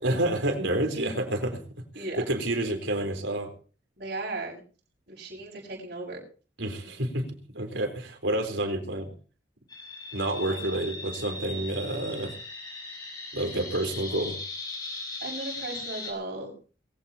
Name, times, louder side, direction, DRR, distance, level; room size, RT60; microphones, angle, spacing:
voice 1, 0.0-3.5 6.6-7.3 7.5-9.1 10.1-12.3 13.3-14.4, right 1 dB, 80° right, 5 dB, 3.9 m, -29 dB
voice 2, 4.0-4.6 5.1-6.2 10.5-10.6 15.2-16.5, right 2 dB, 60° right, -2 dB, 6.3 m, -36 dB
sound 1, 9.7-16.1, left 2 dB, 20° left, 5.4 m, -39 dB
22.0 x 16.0 x 2.9 m, 0.38 s
head